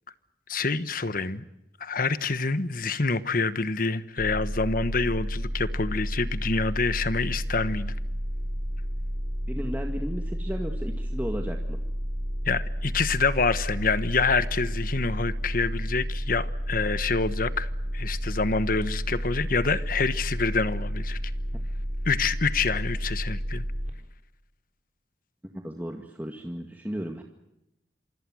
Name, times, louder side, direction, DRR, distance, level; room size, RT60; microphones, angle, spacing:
voice 1, 0.5-1.4 1.8-7.9 12.4-21.2 22.0-23.6, left 4 dB, 50° left, 13 dB, 1.2 m, -27 dB
sound 1, 4.2-23.9, equal, 45° right, 4.0 m, -31 dB
voice 2, 9.5-11.8 25.5-27.2, equal, 10° right, 2 dB, 2.0 m, -34 dB
27.5 x 25.5 x 6.3 m, 0.88 s
head